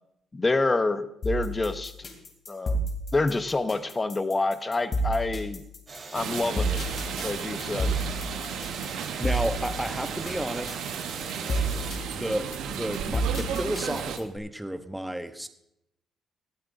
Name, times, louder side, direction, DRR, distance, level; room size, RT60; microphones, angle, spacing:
voice 1, 0.3-1.9 2.5-5.6 6.1-6.8 7.2-8.0, left 3 dB, 25° left, 11 dB, 0.9 m, -27 dB
sound 1, 1.2-14.4, right 1 dB, 50° left, 2.8 m, -30 dB
sound 2, 5.9-11.9, right 3 dB, 35° right, 3.8 m, -42 dB
sound 3, 6.1-14.2, right 8 dB, 85° right, 1.0 m, -34 dB
voice 2, 9.2-10.8 12.1-15.5, right 1 dB, 5° right, 8 dB, 0.9 m, -32 dB
19.0 x 13.0 x 2.6 m, 0.80 s
cardioid pair, 90°, 0 cm